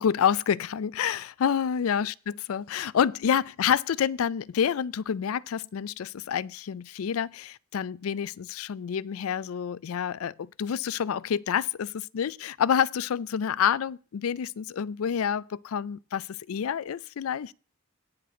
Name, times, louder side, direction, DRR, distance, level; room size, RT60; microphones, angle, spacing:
voice 1, 0.0-2.1 2.5-17.5, left 8 dB, 85° left, 0.4 m, -28 dB
17.5 x 6.0 x 3.7 m
head